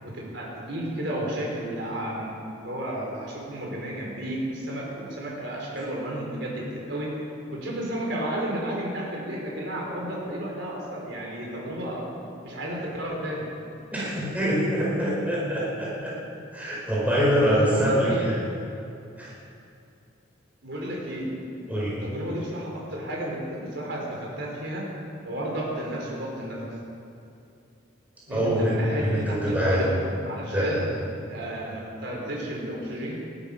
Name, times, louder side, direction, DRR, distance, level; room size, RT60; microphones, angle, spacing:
voice 1, 0.0-12.1 12.4-13.4 17.4-18.3 20.6-21.3 22.0-24.9 25.2-26.7 28.3-29.9 30.2-30.9 31.3-33.2, right 1 dB, 60° right, -3 dB, 4.8 m, -32 dB
voice 2, 13.9-16.1 16.5-18.4 19.2-19.3 21.7-21.9 28.3-29.8 30.5-30.8, equal, 10° right, -7 dB, 5.0 m, -24 dB
20.0 x 13.0 x 5.6 m, 2.6 s
head